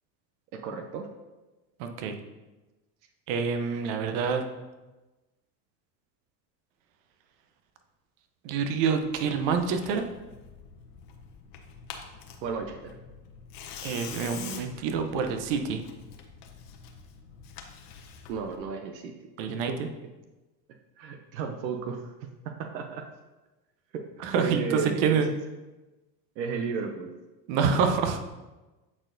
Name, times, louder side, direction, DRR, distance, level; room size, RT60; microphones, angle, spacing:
voice 1, 0.6-1.1 12.4-13.0 18.3-19.1 19.7-19.8 21.0-22.1 22.4-23.0 23.9-24.0 24.4-25.2 26.4-27.1, right 5 dB, 90° right, 5 dB, 0.7 m, -33 dB
voice 2, 1.8-2.2 3.3-4.4 8.4-10.0 13.8-15.8 19.4-19.7 24.2-25.3 27.5-28.2, right 6 dB, 60° right, 6 dB, 0.8 m, -27 dB
Tearing, 9.0-18.6, left 7 dB, 75° left, 1.0 m, -46 dB
8.7 x 4.2 x 2.7 m, 1.1 s
supercardioid pair, 100°, 50 cm